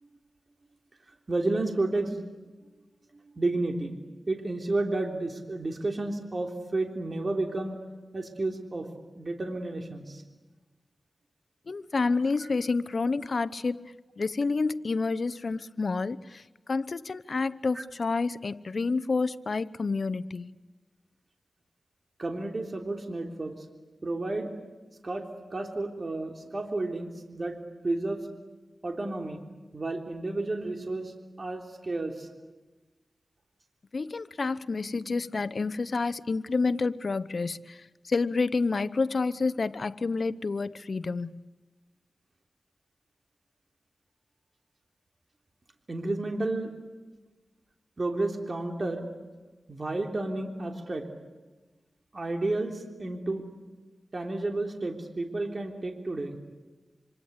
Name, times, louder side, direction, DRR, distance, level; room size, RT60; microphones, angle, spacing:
voice 1, 1.3-2.2 3.4-3.9 4.3-7.7 8.1-8.9 9.1-10.2 17.7-17.8 22.2-23.5 24.0-24.5 25.0-25.2 25.5-27.6 27.8-28.2 28.8-29.4 29.7-31.1 31.4-32.3 45.9-46.7 48.0-49.1 49.7-51.1 52.1-53.4 54.1-56.4, right 2 dB, 45° right, 3 dB, 3.4 m, -31 dB
voice 2, 11.7-13.8 14.2-16.2 16.7-20.5 33.9-37.6 38.1-41.3, left 4 dB, 60° left, 15 dB, 0.9 m, -29 dB
27.0 x 25.5 x 8.3 m, 1.2 s
wide cardioid pair, 70°, 0 cm